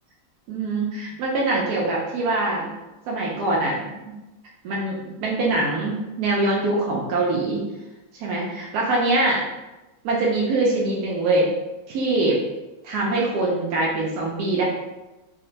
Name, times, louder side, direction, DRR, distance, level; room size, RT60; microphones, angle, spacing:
voice 1, 0.5-2.7 3.1-3.9 4.6-7.6 8.1-9.4 10.0-11.5 11.9-12.4 12.8-14.6, right 2 dB, 85° right, -4 dB, 0.8 m, -23 dB
4.0 x 2.1 x 2.7 m, 1.1 s
omnidirectional pair, 2.2 m